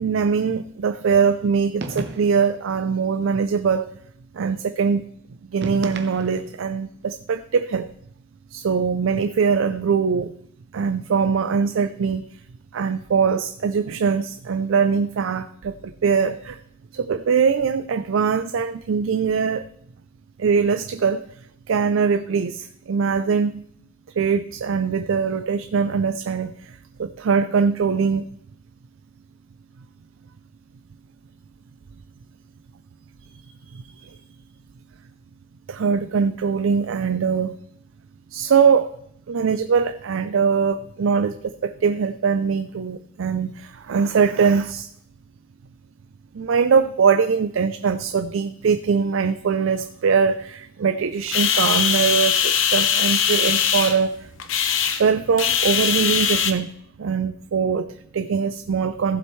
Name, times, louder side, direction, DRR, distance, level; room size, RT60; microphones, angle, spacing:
voice 1, 0.0-3.9 4.3-5.0 5.5-7.9 8.5-10.3 10.7-12.3 12.7-16.6 16.9-19.7 20.4-21.2 21.7-23.6 24.2-28.3 33.7-34.2 35.7-37.6 38.3-38.9 39.3-44.9 46.3-54.3 55.0-56.7 57.0-59.2, right 6 dB, 85° right, 11 dB, 0.4 m, -22 dB
sound 1, 1.8-2.5 5.6-6.6, right 2 dB, 60° right, 0.9 m, -33 dB
sound 2, 51.3-56.5, left 8 dB, 75° left, 0.9 m, -21 dB
15.0 x 7.6 x 3.1 m, 0.74 s
head